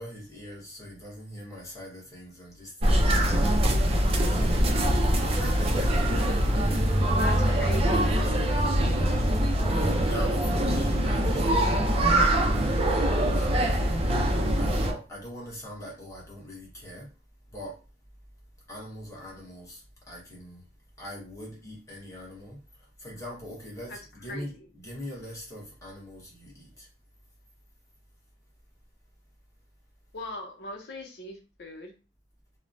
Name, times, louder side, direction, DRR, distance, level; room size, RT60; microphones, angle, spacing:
voice 1, 0.0-12.3 12.5-14.2 14.5-17.1 17.5-17.8 18.7-20.6 21.0-26.9, equal, 20° left, 1.1 m, -42 dB
sound 1, 2.8-14.9, right 1 dB, 35° right, 0.4 m, -23 dB
voice 2, 7.2-8.2 23.9-24.0 24.3-24.7 30.1-31.9, left 1 dB, 65° left, 0.7 m, -39 dB
3.0 x 2.1 x 2.5 m
head